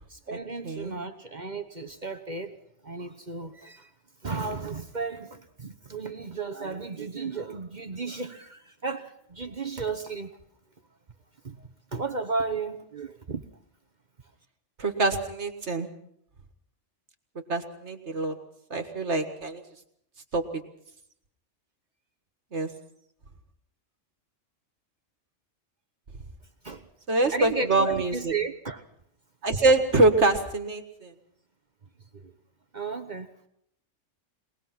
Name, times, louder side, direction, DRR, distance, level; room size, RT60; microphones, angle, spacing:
voice 1, 0.1-2.6 2.8-3.9 4.2-10.3 11.4-13.4 26.6-26.9 27.3-28.8 32.1-32.3 32.7-33.3, right 4 dB, 40° right, 7 dB, 1.1 m, -34 dB
voice 2, 0.6-1.0 14.8-15.9 17.5-18.4 18.7-19.6 20.3-20.6 22.5-22.7 27.1-28.3 29.4-31.1, right 2 dB, 60° right, 6 dB, 2.0 m, -25 dB
23.0 x 19.5 x 5.9 m, 0.73 s
omnidirectional pair, 1.3 m